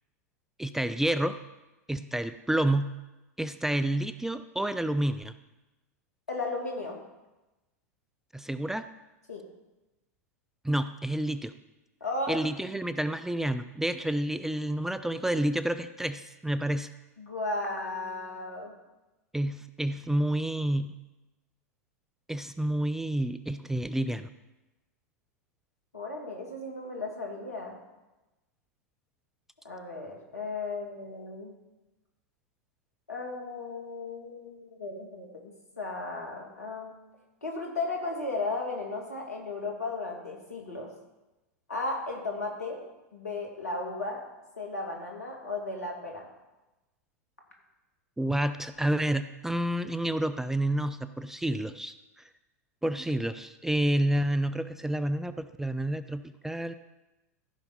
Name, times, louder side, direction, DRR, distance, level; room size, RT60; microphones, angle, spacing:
voice 1, 0.6-1.4 1.9-2.9 3.4-5.3 8.3-8.9 10.6-11.5 12.3-16.9 19.3-20.9 22.3-24.3 48.2-51.9 52.8-56.7, right 1 dB, 5° right, 11 dB, 0.3 m, -29 dB
voice 2, 6.3-7.0 9.3-9.4 12.0-12.5 17.2-18.7 25.9-27.8 29.6-31.5 33.1-35.3 35.8-36.9 37.4-40.9 41.7-42.8 43.1-44.2 44.6-46.3, left 2 dB, 80° left, 0 dB, 2.3 m, -35 dB
14.5 x 5.5 x 4.1 m, 1.0 s
figure-of-eight pair, 90°, 8 cm